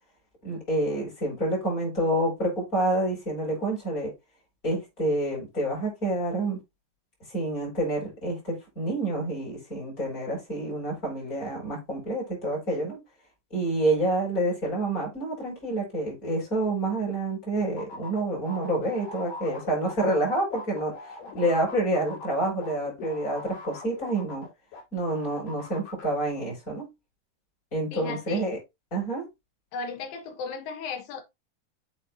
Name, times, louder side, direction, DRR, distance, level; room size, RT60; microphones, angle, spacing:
voice 1, 0.4-4.1 4.6-6.6 7.3-13.0 13.5-20.9 21.3-24.5 24.9-26.9 27.7-28.6 28.9-29.3, right 1 dB, 20° left, 5.1 m, -28 dB
sound 1, 17.8-24.8 25.1-26.0, left 3 dB, 65° left, 3.5 m, -42 dB
voice 2, 27.9-28.5 29.7-31.2, left 5 dB, 85° left, 2.9 m, -35 dB
8.8 x 4.7 x 2.6 m
omnidirectional pair, 4.1 m